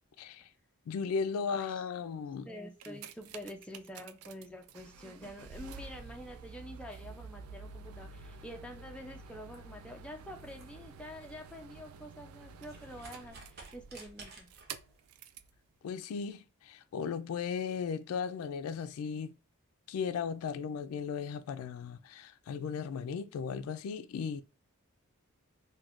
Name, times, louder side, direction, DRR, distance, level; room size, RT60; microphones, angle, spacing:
voice 1, 0.2-0.5 0.9-2.5 15.8-19.3 19.9-24.4, left 6 dB, 85° left, 0.3 m, -36 dB
voice 2, 2.5-14.5, equal, 5° left, 0.4 m, -47 dB
sound 1, 2.6-15.6 16.3-16.4, right 4 dB, 85° right, 0.3 m, -49 dB
sound 2, 9.4-15.0, right 3 dB, 50° right, 0.7 m, -56 dB
2.4 x 2.2 x 3.5 m
head